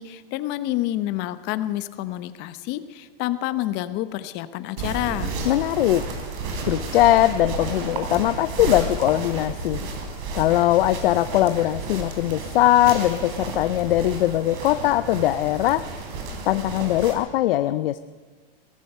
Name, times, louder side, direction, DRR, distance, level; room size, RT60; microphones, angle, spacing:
voice 1, 0.0-5.3, left 14 dB, 35° left, 13 dB, 0.9 m, -28 dB
sound 1, 4.8-17.1, right 3 dB, 55° right, 3.7 m, -32 dB
voice 2, 5.4-6.1 6.6-9.8 10.3-15.9 16.5-18.0, left 14 dB, 70° left, 13 dB, 0.6 m, -21 dB
17.5 x 15.0 x 5.5 m, 1.5 s
supercardioid pair, 145°, 29 cm